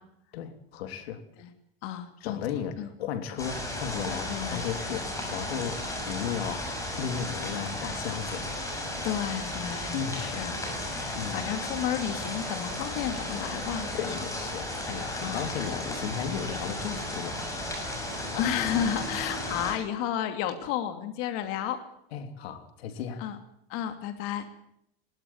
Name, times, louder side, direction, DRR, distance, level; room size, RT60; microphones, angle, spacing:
voice 1, 0.3-1.2 2.2-6.7 7.0-8.5 9.9-10.3 11.1-11.5 13.9-17.4 22.1-23.2, left 8 dB, 85° left, 7 dB, 3.2 m, -35 dB
voice 2, 1.8-2.4 2.8-2.9 4.3-4.6 9.0-14.2 15.2-15.4 18.3-21.8 23.2-23.4 23.7-24.4, left 10 dB, 45° left, 6 dB, 2.8 m, -32 dB
sound 1, 3.4-19.7, left 1 dB, 10° left, 6.5 m, -34 dB
21.0 x 19.0 x 7.3 m, 0.73 s
supercardioid pair, 160°, 30 cm